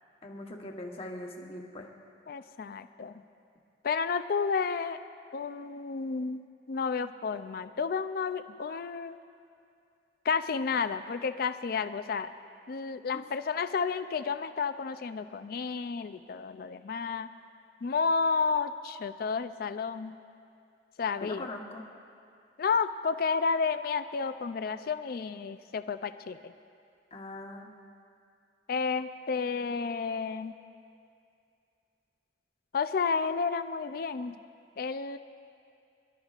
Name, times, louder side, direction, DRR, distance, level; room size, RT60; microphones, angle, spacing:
voice 1, 0.2-1.9 13.1-13.2 21.2-21.9 27.1-27.7, left 1 dB, 35° left, 1 dB, 1.1 m, -41 dB
voice 2, 2.3-3.1 3.8-5.0 5.3-9.2 10.3-12.3 12.7-17.3 17.8-20.2 21.0-21.5 22.6-26.5 28.7-30.6 32.7-34.4 34.8-35.2, left 5 dB, 55° left, 11 dB, 0.4 m, -31 dB
24.5 x 12.0 x 2.5 m, 2.5 s
head